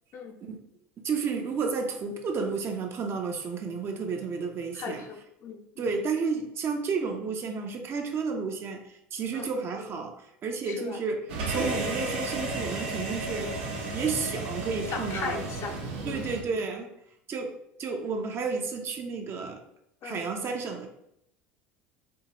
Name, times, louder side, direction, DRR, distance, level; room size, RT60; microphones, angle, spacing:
voice 1, 1.0-5.1 5.8-13.6 13.9-15.4 16.1-16.9 17.3-17.5 17.8-19.6 20.0-20.9, right 4 dB, 40° right, 4 dB, 0.6 m, -31 dB
voice 2, 4.7-5.6 9.3-9.5 10.7-11.0 14.9-16.3 20.0-20.2, left 5 dB, 50° left, 4 dB, 0.6 m, -37 dB
sound 1, 11.3-16.4, right 3 dB, 85° right, 0.9 m, -33 dB
4.4 x 2.2 x 2.9 m, 0.76 s
supercardioid pair, 100°, 6 cm